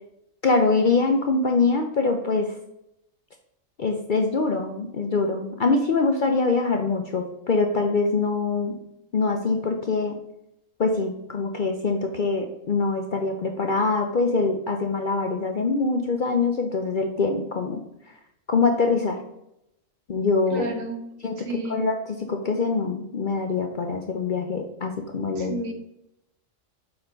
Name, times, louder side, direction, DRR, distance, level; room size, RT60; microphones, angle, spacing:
voice 1, 0.4-2.5 3.8-8.8 9.1-10.2 10.8-17.8 18.5-19.2 20.1-20.7 21.2-21.4 21.7-21.9 22.3-25.6, left 3 dB, 55° left, 4 dB, 0.6 m, -24 dB
voice 2, 20.5-21.0 21.4-21.8 25.3-25.7, right 2 dB, 75° right, 4 dB, 1.5 m, -31 dB
6.0 x 4.4 x 5.0 m, 0.83 s
omnidirectional pair, 1.4 m